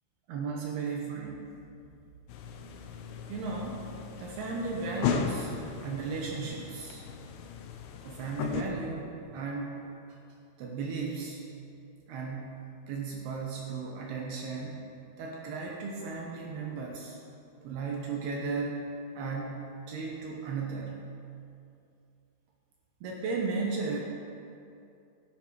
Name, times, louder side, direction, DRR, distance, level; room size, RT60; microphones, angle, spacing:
voice 1, 0.3-1.5 3.3-3.9 4.2-7.0 8.0-9.8 10.6-11.4 12.1-14.7 15.2-17.2 17.6-18.8 19.2-21.0 23.0-24.0, right 4 dB, 70° right, -1 dB, 2.7 m, -35 dB
sound 1, 2.3-8.6, left 6 dB, 85° left, 3.2 m, -36 dB
13.0 x 11.0 x 4.8 m, 2.6 s
omnidirectional pair, 5.6 m